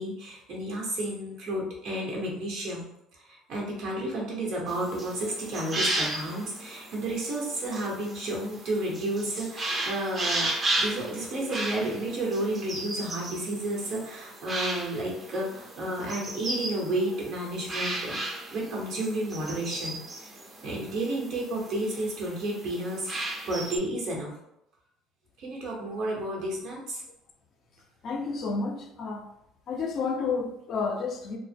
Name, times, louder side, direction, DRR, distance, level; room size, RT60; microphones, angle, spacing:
voice 1, 0.0-2.9 3.1-20.3 20.6-24.3 25.4-27.0, right 1 dB, 70° right, -3 dB, 0.9 m, -32 dB
sound 1, 4.7-23.8, right 2 dB, 35° right, 0.5 m, -35 dB
voice 2, 28.0-29.3 29.7-31.4, left 4 dB, 55° left, 3 dB, 0.4 m, -30 dB
2.0 x 2.0 x 3.3 m, 0.82 s
supercardioid pair, 85°, 0 cm